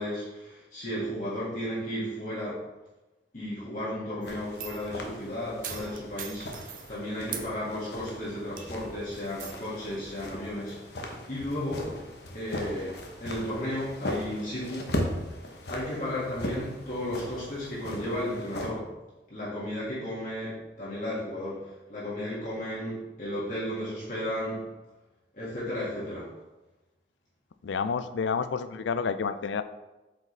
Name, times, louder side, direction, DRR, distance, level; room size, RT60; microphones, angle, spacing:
voice 1, 0.0-2.6 3.3-11.9 12.3-14.9 15.7-18.9 19.3-24.7 25.3-26.3, left 1 dB, 45° left, -9 dB, 2.0 m, -34 dB
sound 1, 4.2-4.9 5.6-6.9 7.3-7.5 8.0-8.1 8.6-8.9 9.4-9.5, right 9 dB, 50° right, 0.6 m, -40 dB
sound 2, 4.3-18.7, left 1 dB, 65° left, 1.0 m, -38 dB
voice 2, 27.6-29.6, left 5 dB, 85° left, 12 dB, 0.4 m, -29 dB
7.7 x 5.0 x 3.3 m, 1.1 s
head